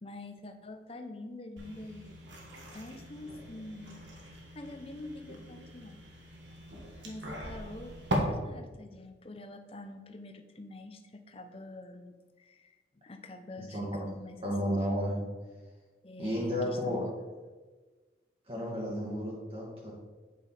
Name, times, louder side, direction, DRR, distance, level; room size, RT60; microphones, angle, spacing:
voice 1, 0.0-2.2 2.7-6.0 7.0-8.0 8.3-14.4 14.7-14.8 16.0-17.1, left 2 dB, 30° left, 7 dB, 0.6 m, -46 dB
sound 1, 1.6-8.2, right 1 dB, 85° right, 1.5 m, -42 dB
voice 2, 13.6-14.1 14.4-15.2 16.2-17.1 18.5-19.9, equal, 30° right, -4 dB, 1.3 m, -32 dB
8.3 x 5.3 x 4.1 m, 1.3 s
head